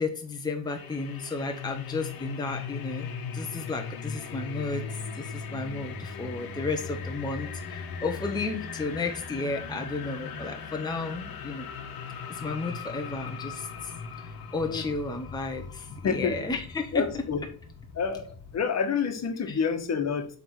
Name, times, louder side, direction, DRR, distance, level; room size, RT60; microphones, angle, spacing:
voice 1, 0.0-4.9 5.1-11.7 12.3-13.9 14.2-17.2 19.5-19.6, left 3 dB, 10° left, 3 dB, 1.0 m, -33 dB
sound 1, 0.7-18.6, left 5 dB, 75° left, 1.3 m, -39 dB
voice 2, 16.0-16.4 16.9-17.4 17.9-20.3, left 6 dB, 45° left, 6 dB, 1.4 m, -28 dB
7.6 x 3.6 x 6.3 m, 0.43 s
cardioid pair, 120°, 36 cm